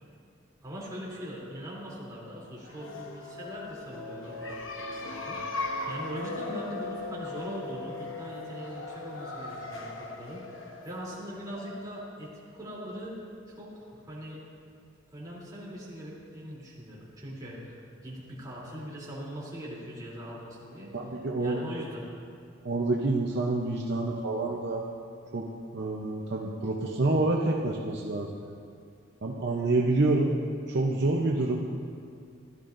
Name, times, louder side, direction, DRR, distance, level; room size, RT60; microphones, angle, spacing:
voice 1, 0.6-5.4 5.9-13.2 13.5-14.4 15.1-20.9 21.4-22.1, equal, 20° right, -7 dB, 3.1 m, -41 dB
sound 1, 2.6-12.1, left 2 dB, 75° left, 1.0 m, -38 dB
voice 2, 20.9-21.6 22.6-24.8 25.3-25.5 25.7-28.3 29.2-30.3 30.7-31.6, right 2 dB, 55° right, -1 dB, 0.7 m, -27 dB
16.5 x 12.0 x 2.6 m, 2.3 s
head